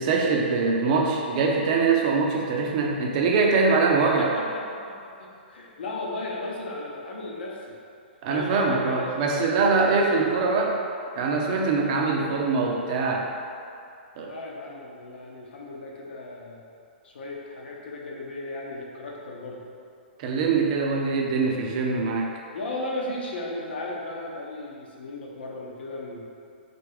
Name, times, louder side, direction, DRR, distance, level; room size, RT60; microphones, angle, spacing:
voice 1, 0.0-4.3 8.2-10.8 11.2-13.3 14.2-14.3 20.2-22.3, right 4 dB, 45° right, 0 dB, 0.6 m, -23 dB
voice 2, 4.2-7.8 8.3-9.3 9.6-9.8 12.2-12.4 14.2-16.6 17.0-19.6 22.5-26.2, left 2 dB, 75° left, -3 dB, 0.9 m, -36 dB
4.1 x 3.4 x 3.4 m, 2.5 s
hypercardioid pair, 135°, 6 cm